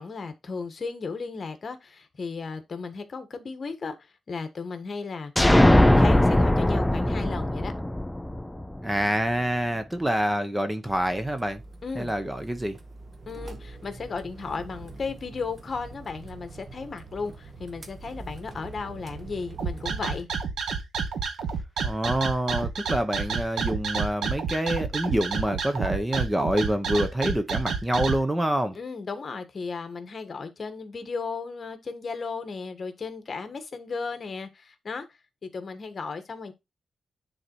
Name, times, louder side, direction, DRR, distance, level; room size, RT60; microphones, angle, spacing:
voice 1, 0.0-3.9 4.3-5.3 5.8-7.7 11.8-12.1 13.3-20.3 28.7-35.0 35.4-36.5, left 4 dB, 40° left, 1.5 m, -35 dB
sound 1, 5.4-9.0, left 1 dB, 10° left, 0.4 m, -20 dB
voice 2, 8.8-11.6 11.9-12.8 21.8-28.8, right 1 dB, 10° right, 0.8 m, -26 dB
sound 2, 10.9-20.3, right 3 dB, 35° right, 1.5 m, -44 dB
sound 3, 19.6-28.2, right 6 dB, 90° right, 1.3 m, -29 dB
9.8 x 4.1 x 4.5 m
wide cardioid pair, 130°, 0 cm